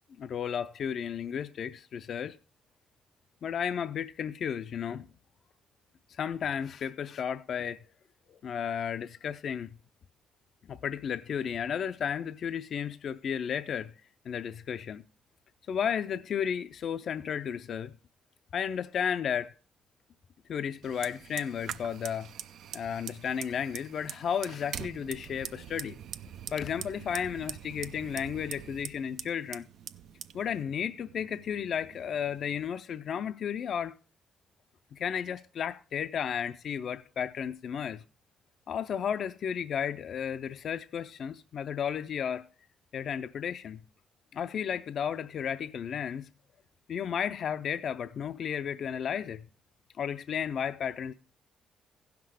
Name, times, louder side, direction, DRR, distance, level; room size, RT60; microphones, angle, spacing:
voice 1, 0.2-2.4 3.4-5.0 6.2-7.8 8.3-9.7 10.7-13.9 14.3-15.0 15.7-17.9 18.5-19.5 20.5-22.3 22.7-26.0 26.5-29.7 30.3-33.9 34.9-38.0 38.7-42.5 42.9-43.8 44.3-46.3 46.9-49.5 50.0-51.1, left 8 dB, 60° left, 0.4 m, -33 dB
Fire, 20.8-32.7, right 9 dB, 75° right, 0.4 m, -44 dB
15.5 x 5.9 x 4.8 m
cardioid pair, 90°, 0 cm